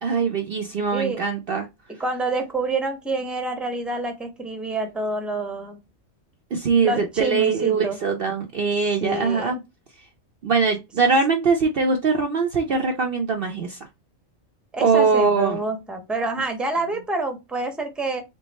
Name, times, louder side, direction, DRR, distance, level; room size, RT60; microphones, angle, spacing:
voice 1, 0.0-1.7 6.5-9.6 10.4-13.8 14.8-15.6, right 5 dB, 55° right, 4 dB, 0.8 m, -22 dB
voice 2, 0.9-1.2 1.9-5.8 6.8-8.0 9.0-9.6 14.7-18.2, right 2 dB, ahead, 5 dB, 0.9 m, -27 dB
3.8 x 3.4 x 4.0 m, 0.23 s
omnidirectional pair, 1.3 m